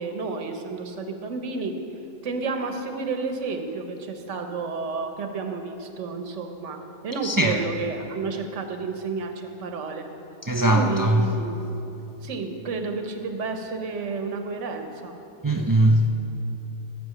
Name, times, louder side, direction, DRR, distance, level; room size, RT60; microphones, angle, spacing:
voice 1, 0.0-1.8 2.2-6.8 7.0-10.1 10.7-11.6 12.2-15.2, right 4 dB, 85° right, 1.3 m, -31 dB
voice 2, 7.2-7.6 10.4-11.3 15.4-16.1, right 1 dB, 30° right, 0.3 m, -20 dB
12.0 x 6.2 x 7.8 m
omnidirectional pair, 1.2 m